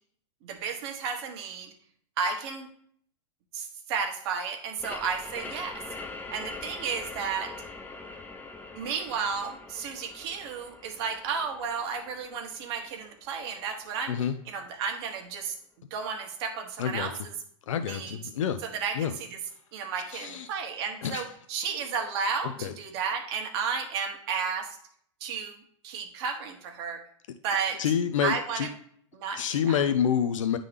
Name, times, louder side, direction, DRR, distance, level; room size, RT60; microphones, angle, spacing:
voice 1, 0.4-1.7 2.2-2.7 3.5-5.8 6.3-7.5 8.7-15.5 15.9-17.3 17.8-18.1 18.6-19.4 19.7-24.8 25.2-25.6 25.8-27.0 27.4-27.8 28.2-28.7 29.1-29.9, right 6 dB, 55° right, 4 dB, 1.2 m, -33 dB
sound 1, 4.8-14.2, left 3 dB, 10° left, 0.6 m, -43 dB
voice 2, 16.8-17.1 17.7-18.6 18.9-19.1 20.1-20.5 21.0-21.2 22.4-22.7 27.8-28.7 29.4-30.6, left 8 dB, 90° left, 9 dB, 0.5 m, -27 dB
9.3 x 3.7 x 3.3 m, 0.63 s
hypercardioid pair, 130°, 16 cm